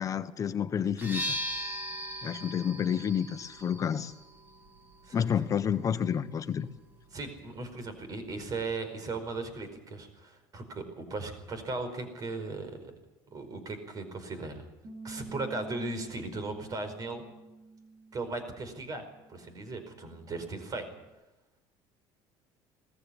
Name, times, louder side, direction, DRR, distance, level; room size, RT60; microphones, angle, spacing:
voice 1, 0.0-1.3 2.2-4.1 5.1-6.7, left 8 dB, 35° left, 10 dB, 1.2 m, -30 dB
sound 1, 0.9-8.7, equal, 20° right, 6.2 m, -41 dB
voice 2, 7.1-12.9 13.3-14.6 15.0-17.2 18.1-19.0 19.3-20.9, right 3 dB, 35° right, 9 dB, 4.9 m, -37 dB
Bass guitar, 14.8-21.1, right 3 dB, 55° right, 7.3 m, -49 dB
19.5 x 14.5 x 9.9 m, 1.0 s
cardioid pair, 115°, 10 cm